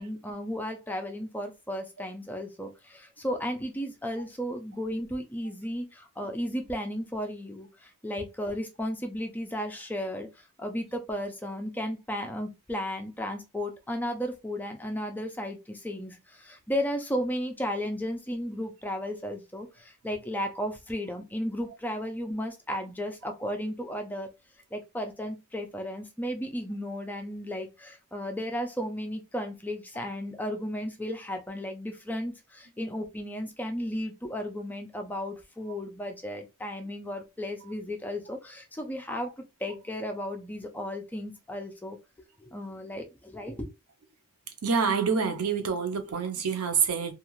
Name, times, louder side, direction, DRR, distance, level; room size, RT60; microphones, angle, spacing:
voice 1, 0.0-24.3 24.7-42.0 42.4-43.7, equal, 10° left, 0.4 m, -34 dB
voice 2, 44.6-47.1, right 6 dB, 85° right, 0.6 m, -27 dB
2.4 x 2.3 x 3.0 m
head